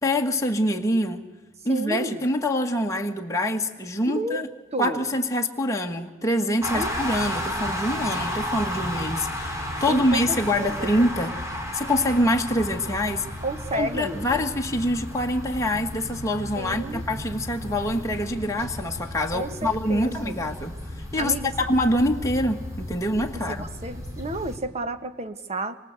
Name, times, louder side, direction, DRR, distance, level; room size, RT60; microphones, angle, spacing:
voice 1, 0.0-1.2 1.6-4.5 4.8-11.4 11.7-13.3 13.7-20.7 21.1-23.7, left 1 dB, 15° left, 1 dB, 1.6 m, -25 dB
voice 2, 1.7-2.2 4.1-4.4 4.7-5.1 6.7-7.0 9.9-10.9 13.4-14.4 16.6-17.0 19.3-20.4 21.2-21.5 23.3-25.8, right 1 dB, 30° right, 10 dB, 1.3 m, -32 dB
sound 1, 6.6-24.6, left 1 dB, 15° right, 3.6 m, -33 dB
26.0 x 24.0 x 8.2 m, 1.1 s
head